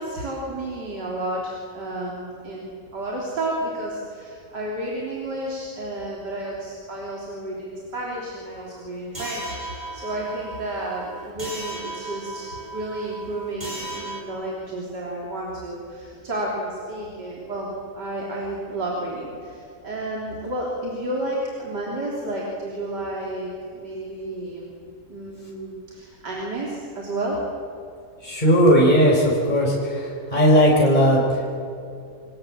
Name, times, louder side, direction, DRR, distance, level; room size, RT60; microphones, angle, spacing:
voice 1, 0.0-17.7 17.9-24.7 25.1-27.4, right 1 dB, 85° right, -3 dB, 4.1 m, -31 dB
sound 1, 9.1-14.2, right 2 dB, 25° right, 4.4 m, -36 dB
voice 2, 28.2-31.6, equal, 25° left, -3 dB, 4.7 m, -18 dB
28.0 x 22.5 x 7.6 m, 2.4 s
omnidirectional pair, 1.8 m